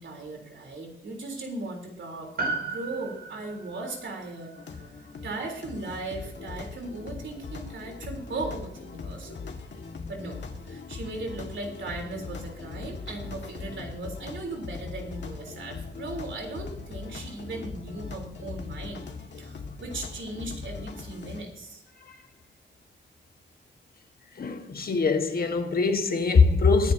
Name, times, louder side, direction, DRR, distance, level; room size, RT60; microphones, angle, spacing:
voice 1, 0.0-2.3 2.7-4.9 5.2-9.4 10.1-10.4 10.6-19.0 19.4-21.8, right 2 dB, 80° right, 3.8 m, -37 dB
Piano, 2.4-7.0 7.2-7.3, right 3 dB, 55° right, 5.2 m, -37 dB
sound 1, 4.6-21.4, left 4 dB, 65° left, 1.9 m, -40 dB
voice 2, 24.3-26.9, left 4 dB, 50° left, 1.5 m, -22 dB
22.5 x 10.5 x 2.8 m
wide cardioid pair, 130°, 19 cm